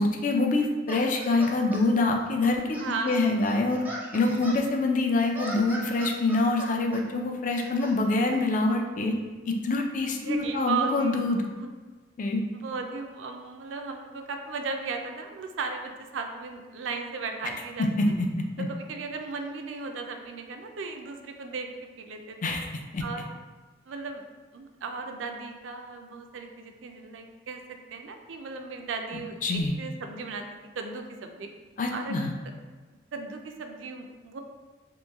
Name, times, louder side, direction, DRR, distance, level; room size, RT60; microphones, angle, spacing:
voice 1, 0.0-2.8 3.0-3.8 4.1-9.1 9.5-11.5 12.2-12.4 18.0-18.1 18.6-18.7 22.4-22.7 22.9-23.0 29.4-29.7 31.8-32.3, left 2 dB, 45° left, 3 dB, 0.4 m, -25 dB
sound 1, 0.9-1.8 2.4-4.6 5.2-7.0 7.5-7.9, right 1 dB, 10° right, 0.5 m, -40 dB
voice 2, 2.8-3.3 10.1-11.3 11.5-11.7 12.5-17.9 18.6-21.7 22.0-22.6 23.0-23.3 23.9-24.2 24.5-31.5 31.9-32.2 33.1-34.4, right 4 dB, 85° right, 4 dB, 0.4 m, -36 dB
3.0 x 3.0 x 3.4 m, 1.3 s
head